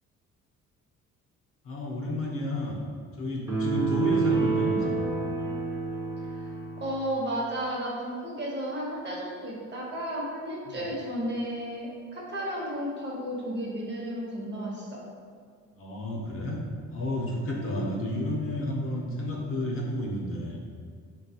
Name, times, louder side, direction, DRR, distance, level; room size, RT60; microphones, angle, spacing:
voice 1, 1.6-2.8 3.2-5.0 10.7-10.9 15.7-16.6 16.9-20.6, left 1 dB, 45° left, -2 dB, 0.6 m, -31 dB
sound 1, 3.5-7.0, right 4 dB, 10° right, 0.6 m, -28 dB
voice 2, 6.8-15.0 17.6-17.8, equal, 35° right, -4 dB, 0.9 m, -33 dB
3.3 x 2.3 x 2.7 m, 2.1 s
cardioid pair, 90°, 30 cm